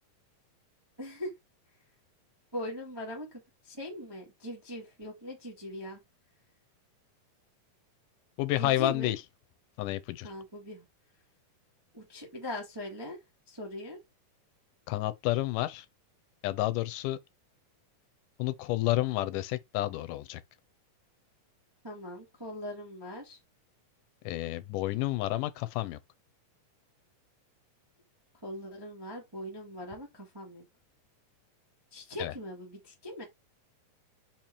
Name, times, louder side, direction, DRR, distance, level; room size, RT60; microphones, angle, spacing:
voice 1, 1.0-1.3 2.5-3.3 3.7-6.0 8.6-9.1 10.2-10.8 11.9-13.2 13.5-14.0 21.8-23.4 28.4-30.6 31.9-33.2, left 1 dB, 15° right, 1.0 m, -40 dB
voice 2, 8.4-9.2 9.8-10.3 14.9-15.9 16.4-17.2 18.4-20.4 24.2-26.0 32.2-32.3, left 16 dB, 85° left, 2.2 m, -30 dB
5.5 x 4.4 x 4.4 m
omnidirectional pair, 3.8 m